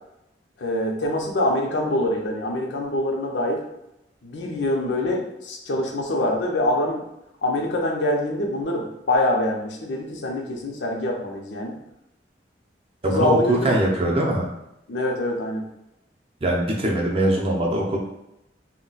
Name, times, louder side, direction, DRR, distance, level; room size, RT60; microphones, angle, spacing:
voice 1, 0.6-3.6 4.2-7.1 7.4-11.7 13.0-13.8 14.9-15.6, left 1 dB, 80° left, 0 dB, 0.6 m, -25 dB
voice 2, 13.0-14.5 16.4-18.0, right 1 dB, 35° right, -1 dB, 0.6 m, -22 dB
2.3 x 2.1 x 3.9 m, 0.87 s
head